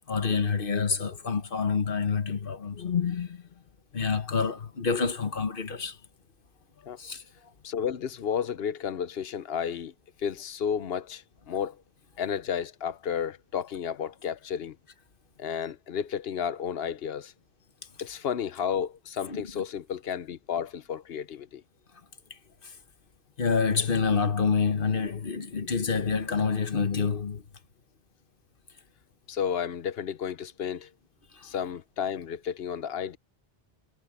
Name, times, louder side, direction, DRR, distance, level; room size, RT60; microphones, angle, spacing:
voice 1, 0.1-3.4 3.9-6.0 7.0-7.2 19.3-19.5 22.6-22.7 23.4-27.4 31.3-31.5, left 5 dB, 60° left, 1.4 m, -27 dB
voice 2, 7.6-9.9 10.2-11.8 12.2-14.8 15.4-17.3 18.0-21.6 29.3-30.9 31.4-33.2, left 8 dB, 75° left, 1.0 m, -32 dB
omnidirectional pair, 1.0 m